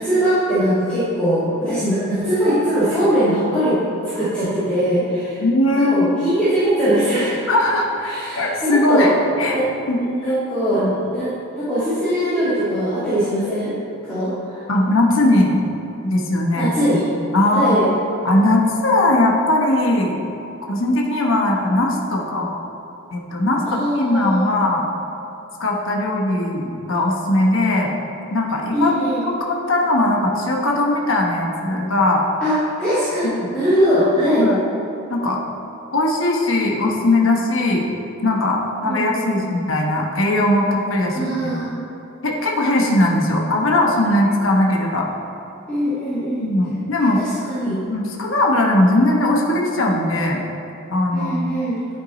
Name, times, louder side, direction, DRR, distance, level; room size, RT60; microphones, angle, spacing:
voice 1, 0.0-5.4 5.8-7.4 8.0-9.1 9.4-9.7 10.0-13.7 14.0-14.6 16.6-17.1 17.5-17.9 23.7-24.5 28.7-29.2 32.4-34.5 38.8-39.4 41.1-41.7 45.7-46.5 47.0-47.8 51.1-51.8, equal, 5° left, -15 dB, 1.8 m, -21 dB
voice 2, 5.4-6.3 7.5-9.1 9.4-9.6 9.9-10.0 10.8-10.9 14.7-15.6 16.0-16.7 17.3-17.8 18.2-20.2 20.6-22.6 23.1-24.8 25.6-27.9 28.3-28.9 29.3-32.3 33.2-33.5 34.4-34.6 35.1-35.4 35.9-37.8 38.2-41.6 42.2-45.1 46.4-47.2 47.9-50.4 50.9-51.5, left 1 dB, 70° left, 0 dB, 1.0 m, -19 dB
10.5 x 4.5 x 4.0 m, 2.8 s
head